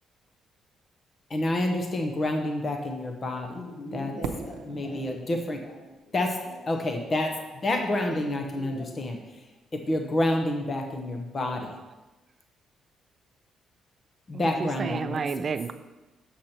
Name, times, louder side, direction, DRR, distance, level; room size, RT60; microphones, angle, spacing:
voice 1, 1.3-3.6 3.9-4.1 4.7-5.6 6.1-6.4 6.7-7.3 7.6-9.5 9.7-11.8 14.3-15.2, left 1 dB, 40° left, 3 dB, 0.9 m, -28 dB
voice 2, 3.5-6.1 6.4-6.6 8.1-8.3 8.5-9.0, left 1 dB, 85° left, -3 dB, 2.7 m, -42 dB
Fireworks, 4.2-7.1, right 6 dB, 90° right, 0.7 m, -40 dB
voice 3, 14.3-15.7, right 5 dB, 45° right, 11 dB, 0.4 m, -31 dB
7.3 x 6.5 x 4.4 m, 1.1 s
cardioid pair, 90°, 0 cm